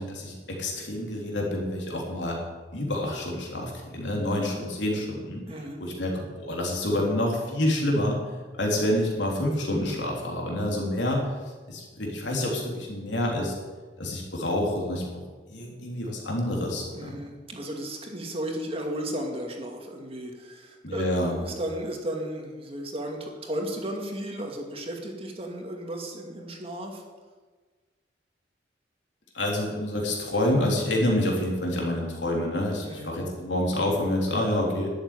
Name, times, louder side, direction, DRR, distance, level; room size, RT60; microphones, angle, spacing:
voice 1, 0.0-2.4 2.7-5.4 5.8-8.2 8.5-11.3 11.7-13.5 14.0-15.0 15.5-17.2 20.8-21.4 29.3-34.9, left 1 dB, 70° left, -1 dB, 3.6 m, -27 dB
voice 2, 5.5-5.8 16.9-27.0 32.8-33.1, right 1 dB, 30° right, 1 dB, 2.3 m, -34 dB
12.0 x 7.8 x 9.8 m, 1.4 s
head